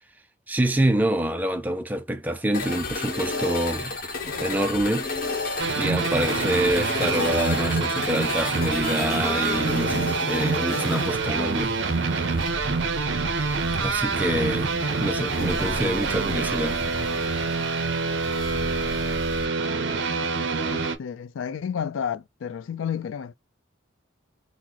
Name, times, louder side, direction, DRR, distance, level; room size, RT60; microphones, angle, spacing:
voice 1, 0.5-3.9 4.4-5.1 5.7-11.8 13.7-14.7 15.0-16.8, right 1 dB, 10° right, 0.3 m, -26 dB
sound 1, 2.5-19.4, left 3 dB, 45° left, 0.9 m, -33 dB
sound 2, 5.6-21.0, right 4 dB, 60° right, 0.6 m, -26 dB
voice 2, 20.1-23.3, left 7 dB, 80° left, 0.4 m, -32 dB
3.9 x 2.0 x 2.8 m
head